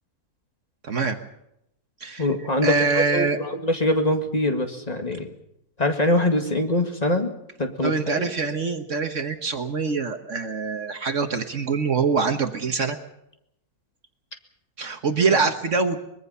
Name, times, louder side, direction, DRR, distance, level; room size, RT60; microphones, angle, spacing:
voice 1, 0.8-1.2 2.0-2.3 2.6-3.4 7.8-13.0 14.8-16.0, right 4 dB, 55° right, 7 dB, 1.5 m, -24 dB
voice 2, 2.2-5.3 5.8-7.3 7.6-8.2 15.3-15.4, left 1 dB, 25° left, 4 dB, 2.0 m, -23 dB
23.5 x 21.5 x 5.6 m, 0.81 s
omnidirectional pair, 1.6 m